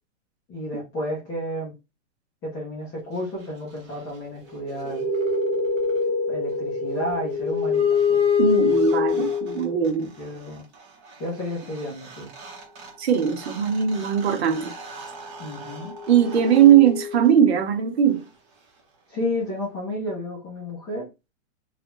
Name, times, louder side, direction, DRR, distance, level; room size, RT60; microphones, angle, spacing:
voice 1, 0.5-1.7 2.4-5.1 6.3-8.3 9.9-10.6 11.2-12.3 15.4-16.0 19.1-21.1, left 1 dB, 10° left, 0.5 m, -32 dB
sound 1, 4.5-9.9 11.8-11.9 12.0-17.5, left 5 dB, 20° right, 0.8 m, -26 dB
voice 2, 8.4-10.1 13.0-14.7 16.1-18.3, right 9 dB, 60° right, 0.9 m, -19 dB
3.1 x 2.4 x 3.0 m
hypercardioid pair, 170°, 37 cm